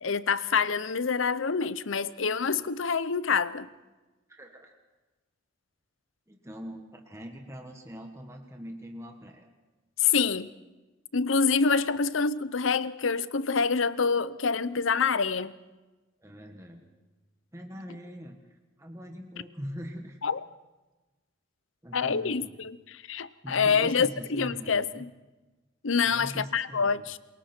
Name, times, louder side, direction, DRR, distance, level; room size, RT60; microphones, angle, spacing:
voice 1, 0.0-3.7 10.0-10.5 11.1-15.5 20.2-20.4 21.9-22.8 23.1-25.1 25.8-27.2, left 5 dB, 75° left, 16 dB, 0.8 m, -26 dB
voice 2, 4.3-4.8 6.3-9.5 16.2-16.9 17.5-18.4 18.8-20.2 21.8-22.5 23.4-25.0 26.0-27.1, equal, 15° right, 2 dB, 1.6 m, -42 dB
27.5 x 22.5 x 4.5 m, 1.2 s
head